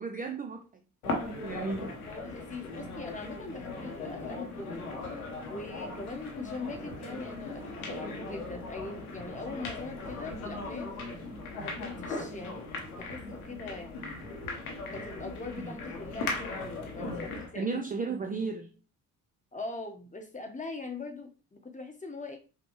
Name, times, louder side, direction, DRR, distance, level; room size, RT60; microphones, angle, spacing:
voice 1, 0.0-2.0 15.6-15.7 17.0-17.3 17.5-18.7, right 4 dB, 20° right, 4 dB, 0.5 m, -35 dB
sound 1, 1.0-17.5, left 3 dB, 90° left, 0.8 m, -38 dB
voice 2, 2.0-5.0 5.5-11.0 11.6-14.3 14.9-17.7 19.5-22.4, left 3 dB, 15° left, 4 dB, 1.1 m, -42 dB
5.1 x 2.2 x 3.0 m, 0.33 s
hypercardioid pair, 45°, 43 cm